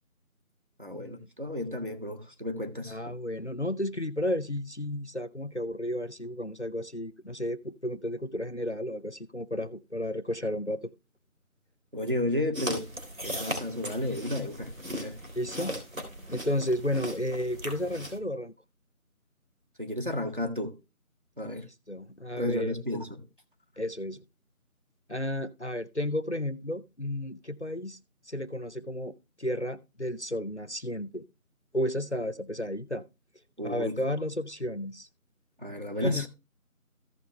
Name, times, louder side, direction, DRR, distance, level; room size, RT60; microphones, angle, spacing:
voice 1, 0.8-3.0 11.9-12.9 13.2-15.2 19.8-20.7 21.4-21.7 22.4-23.3 33.6-34.0 35.6-36.3, left 1 dB, 35° right, 1.9 m, -32 dB
voice 2, 2.9-10.9 15.4-15.7 16.3-18.5 21.9-22.7 23.8-24.2 25.1-28.0 28.3-31.2 31.7-33.0 33.6-35.1 36.0-36.3, left 1 dB, 50° left, 0.7 m, -32 dB
sound 1, 12.5-18.2, equal, 65° right, 3.7 m, -38 dB
15.0 x 5.7 x 3.2 m
figure-of-eight pair, 180°, 43 cm